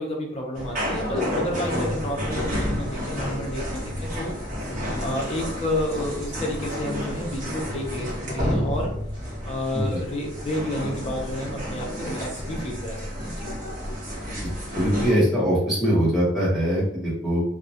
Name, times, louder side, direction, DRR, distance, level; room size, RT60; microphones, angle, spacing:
voice 1, 0.0-4.3 5.0-8.9 9.5-13.5, left 1 dB, 30° left, 0 dB, 0.5 m, -30 dB
sound 1, 0.6-15.1, equal, 45° right, 0.8 m, -30 dB
voice 2, 14.7-17.4, equal, ahead, -9 dB, 0.9 m, -22 dB
2.2 x 2.0 x 2.7 m, 0.73 s
head